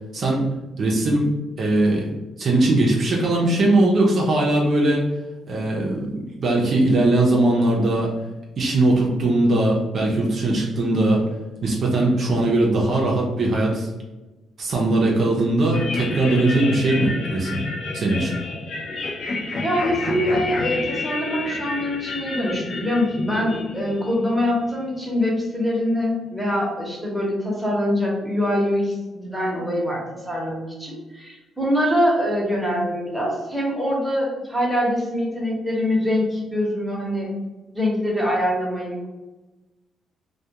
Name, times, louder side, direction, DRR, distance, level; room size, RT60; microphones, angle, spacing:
voice 1, 0.1-0.4 0.8-1.3 1.6-2.1 2.4-5.0 5.5-8.1 8.6-11.2 11.6-13.9 14.6-17.7 17.9-18.4, right 2 dB, 55° right, -2 dB, 0.5 m, -20 dB
sound 1, 15.7-25.1, left 3 dB, 60° left, 0.4 m, -30 dB
voice 2, 19.6-37.3 37.7-39.1, left 1 dB, ahead, -4 dB, 0.9 m, -24 dB
2.3 x 2.2 x 2.8 m, 1.1 s
cardioid pair, 90°, 0 cm